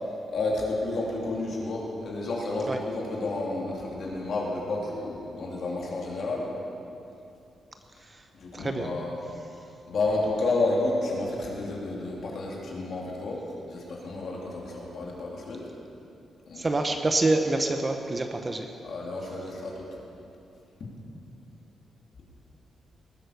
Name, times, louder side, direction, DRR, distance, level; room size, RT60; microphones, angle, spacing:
voice 1, 0.3-6.5 8.4-9.2 9.9-13.4 13.7-15.7 16.5-16.7 18.8-20.0, left 2 dB, 50° left, -3 dB, 3.0 m, -30 dB
voice 2, 8.5-8.9 16.5-18.7, right 2 dB, 20° right, 5 dB, 0.7 m, -26 dB
19.0 x 9.4 x 6.7 m, 2.7 s
wide cardioid pair, 180°, 0 cm